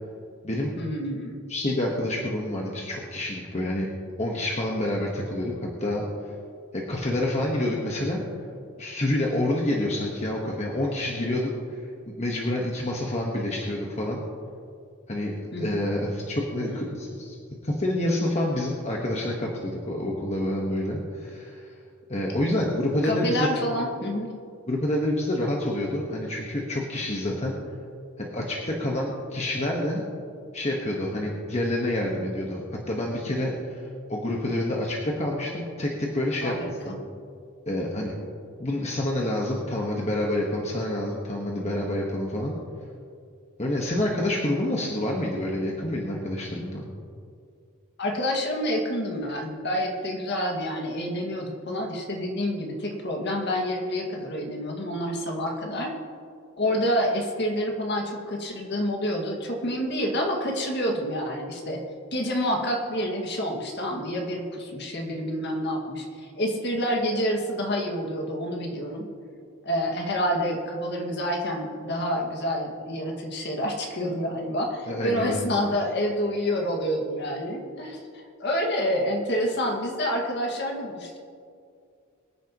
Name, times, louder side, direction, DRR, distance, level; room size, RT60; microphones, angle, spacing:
voice 1, 0.8-1.4 15.5-15.8 16.7-16.8 23.0-24.3 36.4-37.0 48.0-55.9 56.6-61.8 62.1-69.1 69.6-81.2, equal, 50° left, 0 dB, 2.0 m, -28 dB
voice 2, 1.5-3.9 4.2-6.3 6.7-8.2 8.8-11.5 12.2-14.2 15.1-17.4 17.6-21.7 22.1-23.5 24.7-27.5 28.2-30.0 30.5-36.5 36.8-37.0 37.7-38.1 38.6-42.6 43.6-46.9 74.9-75.4, left 1 dB, 30° left, -2 dB, 1.3 m, -28 dB
23.5 x 10.0 x 3.0 m, 2.3 s
head